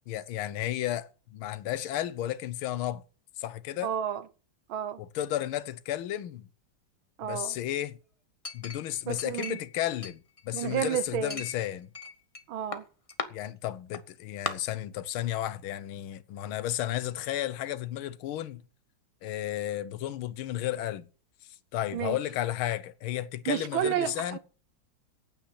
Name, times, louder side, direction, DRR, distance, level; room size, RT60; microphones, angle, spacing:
voice 1, 0.1-3.0 3.4-3.9 5.0-6.5 7.2-8.0 8.5-11.9 13.3-18.6 19.2-21.1 21.7-24.4, left 13 dB, 80° left, 1.7 m, -33 dB
voice 2, 3.8-4.2 4.7-5.0 7.2-7.6 9.1-9.6 10.5-11.4 12.5-12.9 21.9-22.2 23.5-24.4, right 10 dB, 75° right, 1.7 m, -31 dB
Chink clink, 8.4-9.7 10.0-10.8 11.3-12.4 12.7-13.3 13.9-14.0 14.5-14.6, left 4 dB, 30° left, 0.6 m, -37 dB
9.3 x 9.1 x 7.5 m
omnidirectional pair, 2.3 m